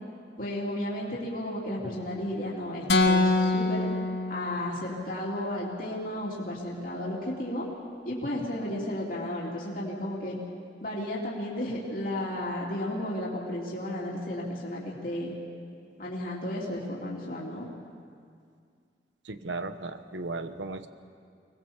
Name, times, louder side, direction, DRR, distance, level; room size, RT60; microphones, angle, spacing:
voice 1, 0.4-3.9 4.3-7.7 8.0-10.4 10.8-15.3 16.0-17.6, left 1 dB, 50° left, -4 dB, 3.0 m, -33 dB
sound 1, 2.9-5.0, left 2 dB, 80° left, 1.6 m, -25 dB
voice 2, 19.2-20.9, right 3 dB, 90° right, 10 dB, 1.1 m, -36 dB
24.0 x 19.5 x 7.3 m, 2.3 s
head